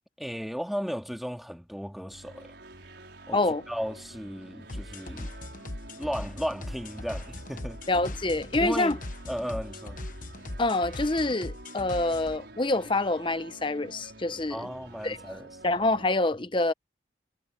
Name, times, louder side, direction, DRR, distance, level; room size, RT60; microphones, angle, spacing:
voice 1, 0.2-2.5 3.3-3.4 3.7-5.3 5.9-7.8 8.6-9.0 9.3-10.0 14.5-15.5, equal, ahead, 2.2 m, -35 dB
sound 1, 2.1-16.1, right 2 dB, 65° right, 6.0 m, -48 dB
voice 2, 3.3-3.6 7.9-9.0 10.6-14.7 15.0-15.2 15.6-16.7, left 2 dB, 25° left, 0.8 m, -26 dB
sound 2, 4.7-12.4, left 2 dB, 45° left, 1.2 m, -39 dB
head